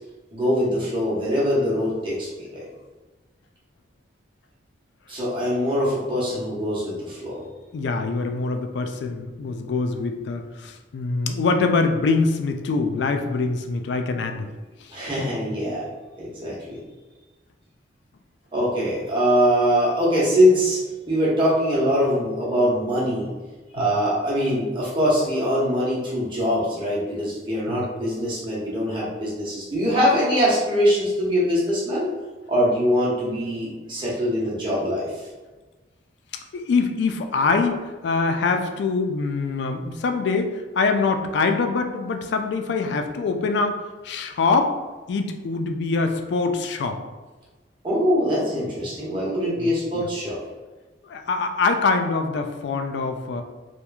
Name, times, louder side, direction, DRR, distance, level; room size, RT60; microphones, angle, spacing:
voice 1, 0.3-2.7 5.1-7.4 14.9-15.9 16.2-16.8 18.5-20.8 21.1-23.3 23.7-32.1 32.5-35.2 47.8-50.4, equal, 25° right, -6 dB, 0.8 m, -23 dB
voice 2, 7.7-14.5 14.8-14.9 23.8-23.9 27.7-27.9 36.5-44.7 45.1-47.0 49.6-50.1 51.1-53.4, left 4 dB, 65° left, 6 dB, 0.3 m, -24 dB
3.0 x 2.4 x 2.3 m, 1.2 s
head